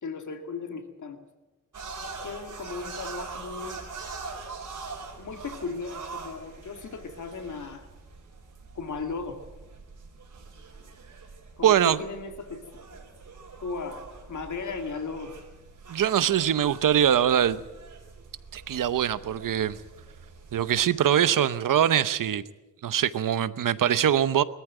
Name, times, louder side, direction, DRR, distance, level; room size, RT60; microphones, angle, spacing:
voice 1, 0.0-1.2 2.2-3.8 5.2-7.9 8.7-9.4 11.6-13.0 13.6-15.3, left 4 dB, 70° left, 2.4 m, -36 dB
sound 1, 1.7-20.8, right 4 dB, 70° right, 4.3 m, -43 dB
voice 2, 11.6-12.0 15.9-17.6 18.5-19.8 20.5-22.4 22.8-24.4, right 10 dB, 90° right, 0.8 m, -23 dB
20.5 x 14.0 x 9.1 m
wide cardioid pair, 95°, 32 cm